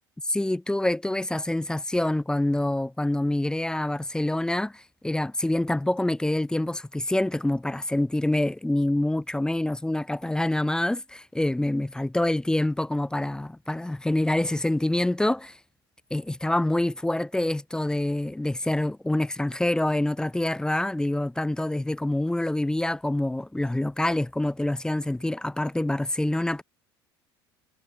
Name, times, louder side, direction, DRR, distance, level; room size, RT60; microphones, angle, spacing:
voice 1, 0.3-15.6 16.1-26.6, left 1 dB, 5° left, 0.6 m, -26 dB
hypercardioid pair, 70°, 12 cm